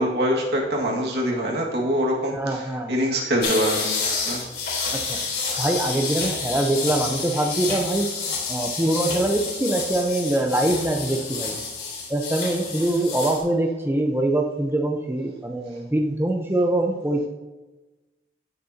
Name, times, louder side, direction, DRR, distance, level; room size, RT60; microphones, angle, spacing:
voice 1, 0.0-4.5, equal, 70° right, -2 dB, 2.0 m, -24 dB
voice 2, 2.3-2.9 4.9-5.2 5.6-8.1 8.5-11.6 12.1-17.3, right 1 dB, 15° right, 2 dB, 0.8 m, -23 dB
sound 1, 3.4-13.4, left 4 dB, 70° left, 3.7 m, -29 dB
16.0 x 6.8 x 2.9 m, 1.1 s
head